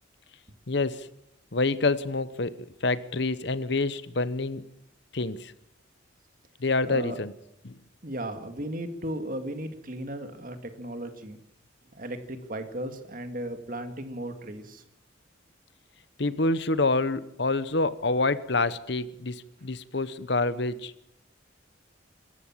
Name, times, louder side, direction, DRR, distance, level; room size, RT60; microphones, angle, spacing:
voice 1, 0.7-1.1 1.5-4.7 5.1-5.5 6.6-7.3 7.6-7.7 16.2-20.9, left 3 dB, 60° left, 1.0 m, -27 dB
voice 2, 6.9-7.2 8.0-11.4 11.9-14.8, right 1 dB, 45° right, 2.2 m, -36 dB
26.0 x 14.0 x 7.4 m
head